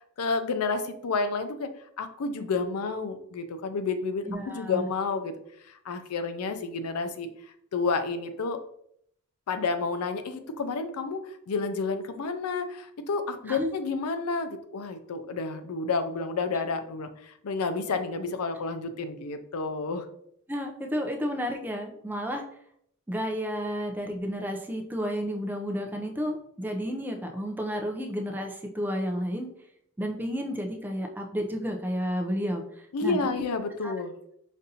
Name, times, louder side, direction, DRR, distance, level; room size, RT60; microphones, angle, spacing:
voice 1, 0.2-1.7 2.0-5.3 5.7-7.3 7.7-8.6 9.5-20.1 32.9-34.1, left 4 dB, 85° left, 9 dB, 0.5 m, -30 dB
voice 2, 4.3-4.9 13.5-13.7 20.5-22.4 23.1-29.5 30.0-32.6 33.0-33.5 33.8-33.9, equal, 10° right, 3 dB, 0.4 m, -31 dB
5.2 x 2.5 x 2.7 m, 0.70 s
head